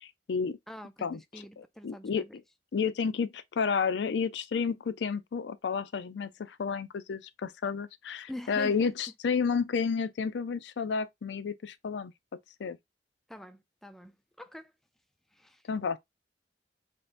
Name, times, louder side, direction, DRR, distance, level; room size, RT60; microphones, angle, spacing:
voice 1, 0.0-0.6 1.0-1.2 1.6-2.2 2.7-12.1 12.6-12.8 15.7-16.0, left 5 dB, 75° left, 0.4 m, -31 dB
voice 2, 0.7-2.3 8.3-8.9 13.3-14.7 15.3-15.6, left 1 dB, ahead, 0.4 m, -44 dB
5.1 x 2.9 x 2.5 m
head